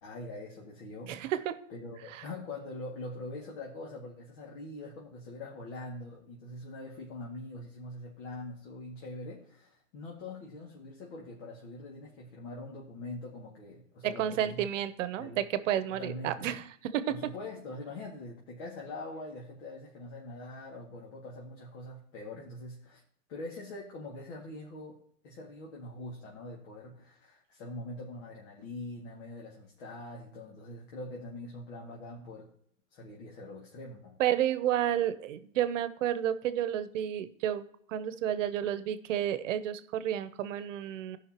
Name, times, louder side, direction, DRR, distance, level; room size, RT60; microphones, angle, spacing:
voice 1, 0.0-1.1 1.7-14.7 15.1-15.4 15.9-16.5 17.1-23.0 23.3-25.0 25.2-32.5 32.9-34.1, left 2 dB, 65° left, -3 dB, 2.2 m, -43 dB
voice 2, 1.1-1.6 14.0-17.3 34.2-41.2, right 11 dB, 75° right, 13 dB, 0.9 m, -31 dB
15.5 x 5.5 x 3.0 m, 0.65 s
hypercardioid pair, 130°, 39 cm